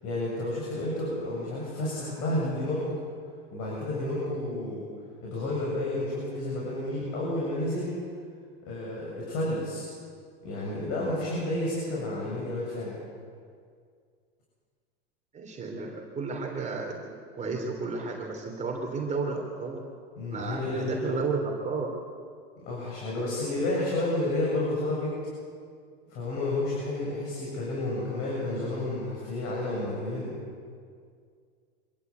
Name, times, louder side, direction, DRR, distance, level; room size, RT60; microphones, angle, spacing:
voice 1, 0.0-3.0 3.5-4.9 5.2-7.9 8.6-9.9 10.4-13.0 20.2-21.2 22.7-25.1 26.1-30.4, left 1 dB, 50° left, -4 dB, 7.5 m, -31 dB
voice 2, 15.3-19.8 20.3-22.0, right 4 dB, 25° right, 1 dB, 3.3 m, -33 dB
25.0 x 14.5 x 8.3 m, 2.1 s
hypercardioid pair, 105°, 31 cm